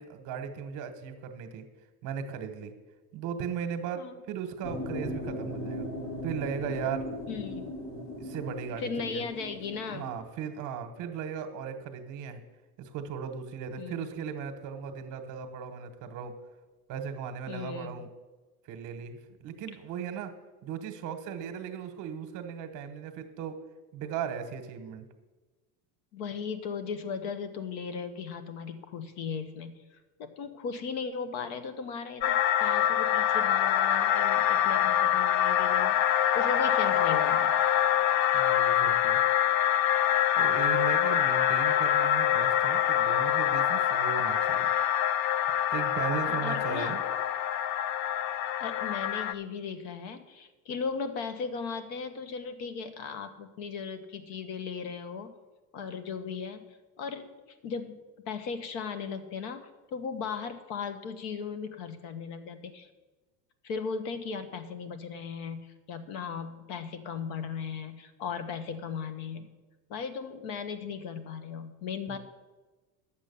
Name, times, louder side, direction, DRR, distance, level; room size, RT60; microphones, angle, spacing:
voice 1, 0.0-1.6 2.0-2.7 3.1-5.9 6.2-7.1 8.2-9.2 9.9-12.4 12.8-16.3 16.9-18.1 18.7-20.3 20.6-23.6 23.9-25.1 38.3-39.2 40.3-44.7 45.7-47.0 72.1-72.2, right 7 dB, 45° right, 8 dB, 1.2 m, -37 dB
sound 1, 4.6-10.2, left 1 dB, 30° left, 1.7 m, -38 dB
voice 2, 7.3-7.6 8.8-10.1 13.8-14.2 17.5-18.0 26.1-29.8 30.2-37.5 46.3-47.0 48.6-55.3 55.7-57.3 57.6-58.0 58.3-62.9 63.6-69.5 69.9-72.2, left 5 dB, 75° left, 10 dB, 1.2 m, -37 dB
sound 2, 32.2-49.3, left 10 dB, 50° left, 0.4 m, -25 dB
10.0 x 7.3 x 6.9 m, 1.2 s
cardioid pair, 180°, 41 cm